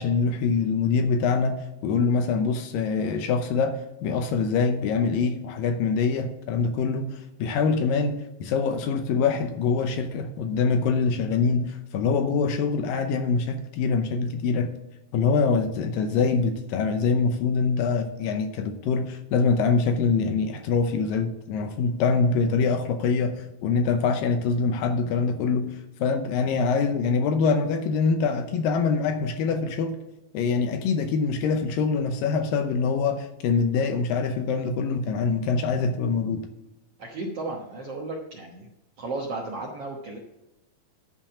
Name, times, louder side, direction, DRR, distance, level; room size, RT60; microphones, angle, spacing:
voice 1, 0.0-14.7 15.1-30.0 30.3-36.5, left 5 dB, 75° left, 2.3 m, -24 dB
voice 2, 37.0-38.7 39.0-40.2, right 2 dB, 65° right, 1.5 m, -34 dB
11.0 x 5.2 x 7.2 m
omnidirectional pair, 4.4 m